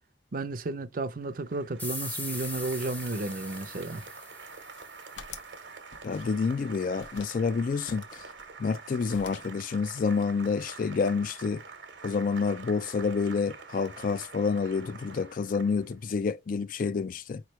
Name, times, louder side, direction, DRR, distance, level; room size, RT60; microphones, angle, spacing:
voice 1, 0.3-4.1, right 2 dB, 50° right, 0.6 m, -33 dB
Applause, 1.2-16.0, right 5 dB, 70° right, 1.0 m, -46 dB
sound 1, 1.8-5.1, left 2 dB, 10° left, 0.7 m, -40 dB
sound 2, 4.5-5.6 5.9-6.6 7.0-7.4 7.9-8.9 9.1-9.6, left 4 dB, 85° left, 0.9 m, -48 dB
voice 2, 6.0-8.2 8.6-11.6 12.0-17.4, left 5 dB, 45° left, 0.3 m, -28 dB
4.7 x 3.2 x 3.0 m
head